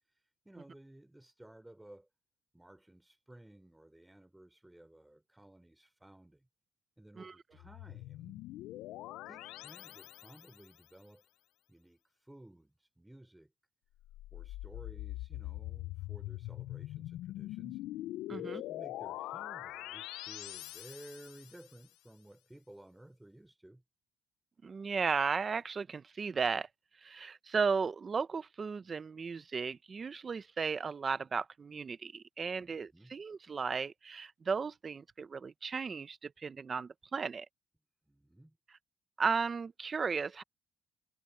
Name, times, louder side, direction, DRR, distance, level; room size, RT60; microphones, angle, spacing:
voice 1, 0.0-2.1 2.5-6.5 7.0-8.4 9.3-11.3 11.7-13.5 14.3-17.8 18.3-23.8 32.6-33.1 38.1-38.6, right 1 dB, 5° right, 4.3 m, -56 dB
sound 1, 7.6-10.7 14.0-21.7, left 16 dB, 90° left, 0.3 m, -43 dB
voice 2, 18.3-18.6 24.6-26.7 27.0-37.5 39.2-40.4, right 5 dB, 30° right, 0.7 m, -35 dB
cardioid pair, 130°, 0 cm